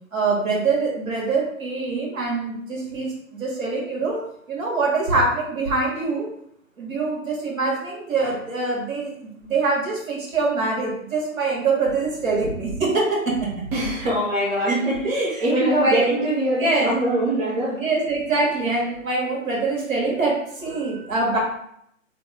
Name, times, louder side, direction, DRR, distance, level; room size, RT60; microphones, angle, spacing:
voice 1, 0.1-4.2 4.5-6.3 6.8-13.0 13.4-13.5 14.7-14.8 15.6-16.1 16.6-16.9 17.8-21.4, right 3 dB, 75° right, -3 dB, 1.4 m, -24 dB
voice 2, 13.7-17.9, right 1 dB, 45° right, -4 dB, 0.7 m, -22 dB
2.8 x 2.1 x 3.4 m, 0.72 s
hypercardioid pair, 160°, 41 cm